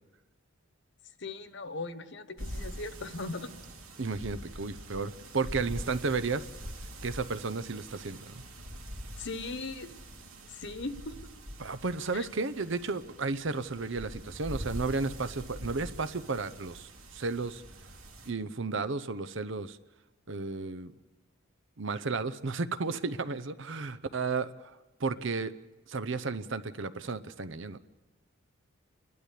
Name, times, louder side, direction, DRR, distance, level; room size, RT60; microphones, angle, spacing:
voice 1, 1.2-3.5 9.2-9.9 10.5-11.1 12.1-12.3, left 3 dB, 55° left, 10 dB, 1.3 m, -38 dB
sound 1, 2.4-18.3, equal, 75° right, 2.9 m, -44 dB
voice 2, 4.0-6.5 7.0-8.4 11.6-17.6 18.3-19.8 20.3-20.9 21.8-24.7 25.0-25.5 25.9-27.8, right 4 dB, 60° right, 11 dB, 0.8 m, -33 dB
29.5 x 12.5 x 8.4 m, 1.2 s
head